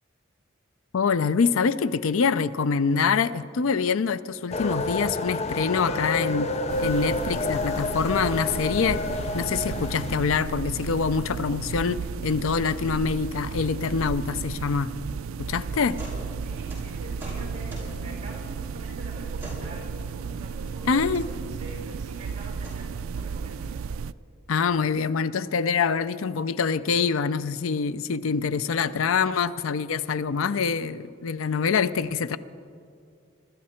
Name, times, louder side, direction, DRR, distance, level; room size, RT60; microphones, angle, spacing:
voice 1, 0.9-6.5 6.8-9.0 9.3-14.9 15.4-16.0 20.9-21.2 24.5-32.4, left 5 dB, 85° left, 15 dB, 0.5 m, -25 dB
sound 1, 4.5-10.2, left 2 dB, 30° left, 0.5 m, -29 dB
sound 2, 6.7-24.1, right 5 dB, 80° right, 0.4 m, -34 dB
voice 2, 15.9-23.9 25.8-25.9 31.6-31.8, right 2 dB, 35° right, -1 dB, 5.4 m, -45 dB
sound 3, 16.0-16.2 16.5-17.9 19.4-19.6 20.9-21.2 22.5-22.8, right 1 dB, 10° right, 5.1 m, -40 dB
24.5 x 13.5 x 4.4 m, 2.3 s
head